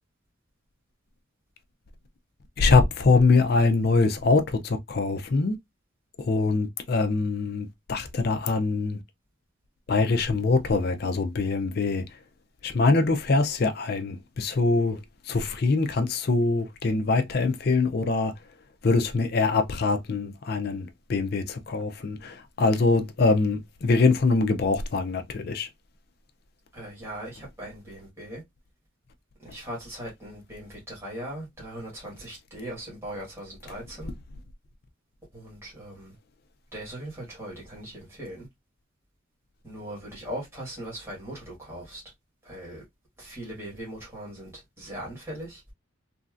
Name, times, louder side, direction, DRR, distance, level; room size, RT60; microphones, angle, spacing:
voice 1, 2.6-5.6 6.2-9.0 9.9-12.0 12.6-15.0 15.3-18.3 18.8-25.7, left 3 dB, 50° left, 0.4 m, -23 dB
voice 2, 26.7-28.4 29.4-34.1 35.3-36.1 36.7-38.5 39.6-42.0 42.4-42.8 43.2-45.6, right 1 dB, 15° right, 1.5 m, -39 dB
3.1 x 2.6 x 2.4 m
head